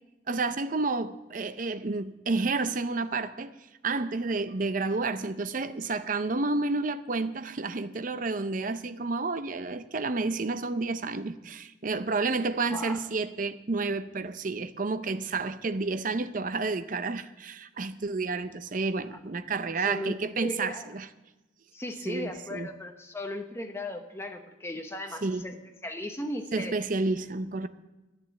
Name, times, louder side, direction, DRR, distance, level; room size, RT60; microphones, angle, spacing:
voice 1, 0.3-3.5 3.8-21.1 22.1-22.7 25.2-25.5 26.5-27.7, right 3 dB, 40° right, 0.6 m, -30 dB
voice 2, 19.8-20.9 21.7-25.6 25.8-26.8, left 1 dB, 15° left, 1.0 m, -37 dB
10.5 x 9.2 x 8.3 m
head